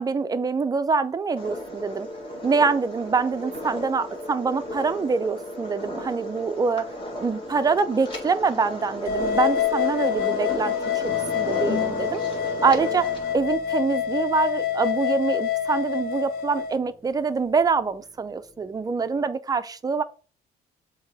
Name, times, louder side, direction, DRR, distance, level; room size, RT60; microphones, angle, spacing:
voice 1, 0.0-2.1 2.4-6.9 7.2-10.7 11.0-12.2 12.6-13.1 13.3-20.0, right 4 dB, 20° right, 0.6 m, -25 dB
sound 1, 1.4-13.3, left 1 dB, 30° left, 1.8 m, -34 dB
sound 2, 9.1-16.7, left 9 dB, 65° left, 0.6 m, -26 dB
sound 3, 11.1-19.3, left 4 dB, 15° left, 1.1 m, -42 dB
7.2 x 2.9 x 4.7 m
cardioid pair, 110°, 17 cm